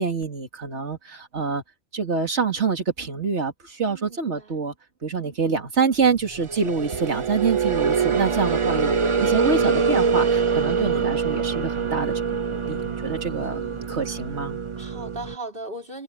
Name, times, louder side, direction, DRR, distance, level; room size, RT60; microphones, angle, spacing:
voice 1, 0.0-1.6 1.9-4.7 5.0-12.2 12.5-13.6 13.9-14.6, right 5 dB, 65° right, 2.8 m, -26 dB
voice 2, 3.9-4.6 5.2-5.4 13.4-14.2 14.8-16.0, right 2 dB, 50° right, 5.1 m, -39 dB
sound 1, 6.3-15.3, right 5 dB, 35° right, 0.6 m, -24 dB
omnidirectional pair, 1.2 m